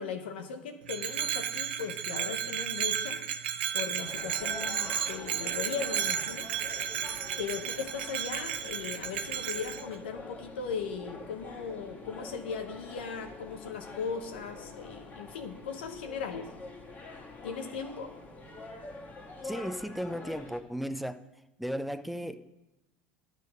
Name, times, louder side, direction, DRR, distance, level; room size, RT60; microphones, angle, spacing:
voice 1, 0.0-3.2 3.7-6.5 7.4-16.5 17.4-18.1, left 6 dB, 85° left, 6 dB, 1.1 m, -38 dB
Bell, 0.9-9.8, right 9 dB, 85° right, 0.8 m, -33 dB
sound 1, 4.0-20.6, left 2 dB, 30° left, 1.8 m, -46 dB
voice 2, 19.4-21.2 21.6-22.5, equal, ahead, 10 dB, 0.5 m, -35 dB
10.5 x 6.5 x 5.3 m, 0.96 s
supercardioid pair, 100°, 5 cm